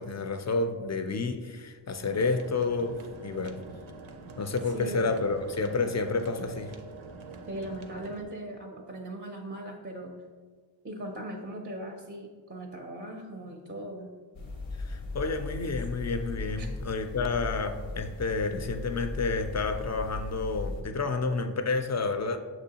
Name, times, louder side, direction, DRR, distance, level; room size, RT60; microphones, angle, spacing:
voice 1, 0.0-3.6 4.4-6.7 14.9-22.4, left 3 dB, 40° left, 7 dB, 0.4 m, -30 dB
sound 1, 2.0-8.2, right 3 dB, 90° right, 0.5 m, -46 dB
voice 2, 4.7-5.1 6.1-6.2 7.5-10.2 10.8-14.1 16.6-16.7, right 1 dB, 25° right, 2 dB, 0.5 m, -39 dB
sound 2, 14.3-20.8, left 2 dB, 90° left, 0.7 m, -37 dB
6.1 x 3.0 x 2.8 m, 1.5 s
wide cardioid pair, 50°, 46 cm